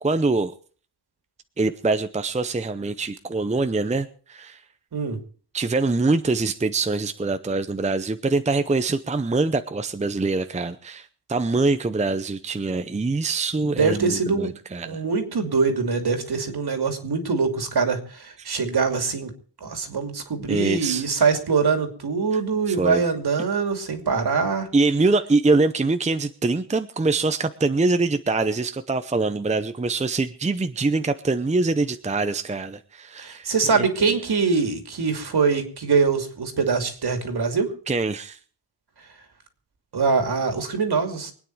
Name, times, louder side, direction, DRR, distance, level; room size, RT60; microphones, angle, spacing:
voice 1, 0.0-0.5 1.6-4.6 5.5-15.0 18.4-18.5 20.5-21.0 22.3-22.4 22.7-23.0 24.7-34.1 37.9-38.4, right 3 dB, 15° right, 10 dB, 0.6 m, -24 dB
voice 2, 13.6-14.5 14.8-19.3 19.6-24.7 33.2-37.7 39.9-41.3, right 5 dB, 65° right, 6 dB, 2.7 m, -23 dB
24.0 x 9.4 x 4.6 m, 0.42 s
wide cardioid pair, 155°, 42 cm